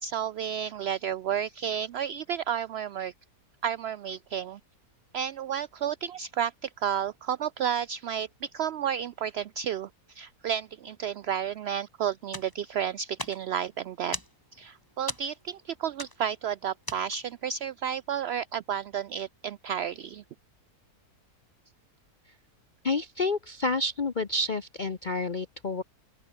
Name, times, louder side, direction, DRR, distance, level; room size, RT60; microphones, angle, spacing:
voice 1, 0.0-3.1 3.6-4.6 5.1-14.2 14.5-20.2, right 9 dB, 70° right, 0.6 m, -32 dB
sound 1, 12.2-17.5, left 1 dB, 15° left, 6.3 m, -41 dB
voice 2, 22.8-25.8, left 3 dB, 35° left, 1.0 m, -29 dB
open air
omnidirectional pair, 1.6 m